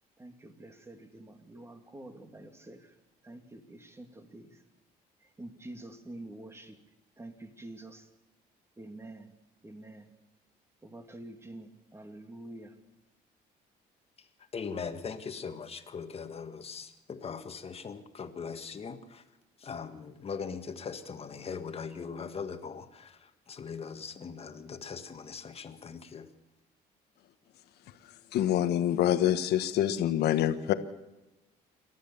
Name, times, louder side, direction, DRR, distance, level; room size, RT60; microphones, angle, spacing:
voice 1, 0.2-2.9 3.2-4.5 5.4-6.8 7.2-8.1 8.8-9.3 9.6-10.1 10.8-12.7, right 1 dB, 15° right, 2.6 m, -47 dB
voice 2, 14.5-19.2 19.6-23.2 23.5-26.3, left 5 dB, 35° left, 1.8 m, -40 dB
voice 3, 28.3-30.7, left 11 dB, 75° left, 1.5 m, -26 dB
28.0 x 13.0 x 7.2 m
cardioid pair, 110°, 17 cm